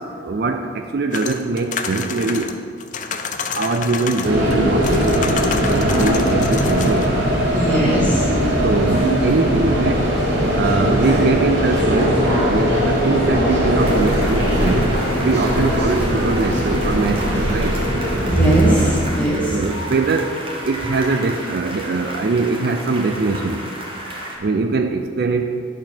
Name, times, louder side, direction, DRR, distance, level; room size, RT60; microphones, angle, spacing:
voice 1, 0.0-2.7 3.1-3.2 3.5-7.1 8.6-10.2 10.5-14.9 15.2-17.8 19.5-23.6 24.4-25.6, right 3 dB, 55° right, 6 dB, 0.4 m, -22 dB
sound 1, 1.1-4.6 4.8-7.1, left 6 dB, 40° left, 0.5 m, -29 dB
sound 2, 4.2-19.0, equal, 70° right, 2.2 m, -19 dB
voice 2, 7.5-8.3 18.3-19.5, right 1 dB, 5° left, -6 dB, 1.9 m, -18 dB
sound 3, 13.8-24.4, equal, 30° right, 1.2 m, -32 dB
11.0 x 6.1 x 4.4 m, 2.2 s
head